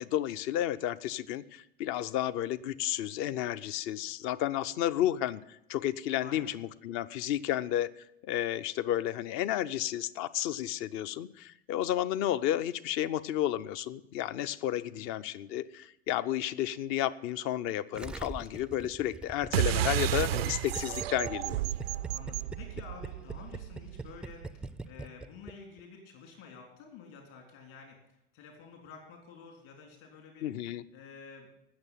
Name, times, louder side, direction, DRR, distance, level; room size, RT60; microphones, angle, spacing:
voice 1, 0.0-7.9 8.2-21.6 30.4-30.8, left 12 dB, 40° left, 15 dB, 0.6 m, -32 dB
voice 2, 6.2-6.5 14.8-15.1 21.9-30.5 30.9-31.5, left 5 dB, 55° left, 2 dB, 3.7 m, -50 dB
Gurgling, 17.9-25.5 25.8-25.9, right 3 dB, 5° right, 0.4 m, -42 dB
sound 1, 19.5-24.4, right 14 dB, 70° right, 0.5 m, -32 dB
18.5 x 6.9 x 5.6 m, 0.83 s
figure-of-eight pair, 80°, 31 cm